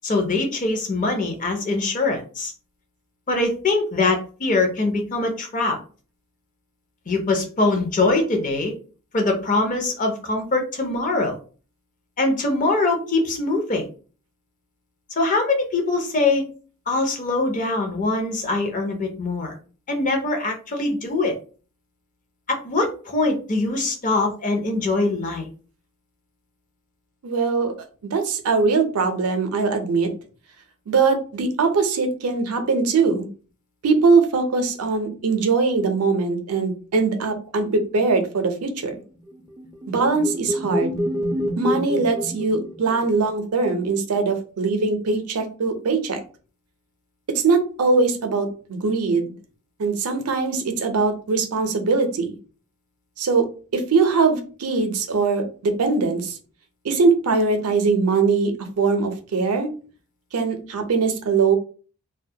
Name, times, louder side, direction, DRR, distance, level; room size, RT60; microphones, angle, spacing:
voice 1, 0.0-2.5 3.3-5.8 7.1-8.7 9.1-11.4 12.2-13.9 15.2-16.4 16.9-19.5 19.9-21.3 22.5-25.5, left 2 dB, 35° left, 3 dB, 0.5 m, -23 dB
voice 2, 27.2-27.7 28.0-30.1 30.9-33.3 33.8-38.9 39.9-41.0 41.6-46.2 47.3-49.3 49.8-52.4 53.2-53.5 53.7-56.3 56.8-59.7 60.3-61.6, right 4 dB, 80° right, 6 dB, 0.5 m, -21 dB
sound 1, 39.3-43.3, equal, 15° right, 0.3 m, -27 dB
2.2 x 2.1 x 2.7 m, 0.38 s
head